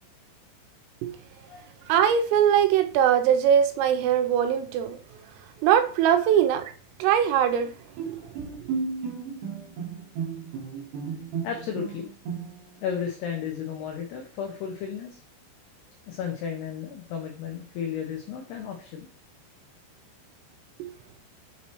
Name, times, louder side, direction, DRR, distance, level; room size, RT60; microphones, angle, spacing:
voice 1, 1.9-5.0 5.6-6.7 7.0-7.7 8.1-8.2 20.8-20.9, right 9 dB, 85° right, 3.3 m, -21 dB
Bowed string instrument, 8.0-12.8, right 5 dB, 70° right, 2.8 m, -34 dB
voice 2, 11.4-12.1 12.8-15.2 16.1-19.1, left 7 dB, 90° left, 2.3 m, -33 dB
7.6 x 4.2 x 3.0 m
omnidirectional pair, 5.8 m